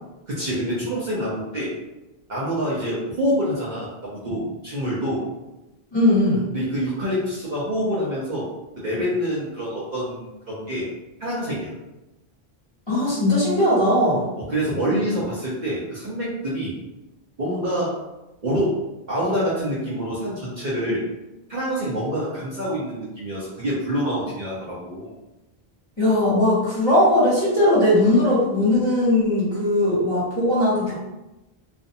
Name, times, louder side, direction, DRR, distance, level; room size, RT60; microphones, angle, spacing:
voice 1, 0.3-1.7 2.3-5.2 6.5-8.5 8.8-10.8 11.2-11.7 14.4-16.7 17.4-17.9 18.4-18.7 19.1-21.0 21.5-25.1, equal, 50° right, -7 dB, 0.7 m, -26 dB
voice 2, 5.9-6.5 12.9-14.2 26.0-31.0, left 1 dB, 25° left, -10 dB, 1.0 m, -19 dB
2.5 x 2.1 x 2.6 m, 0.99 s
omnidirectional pair, 1.1 m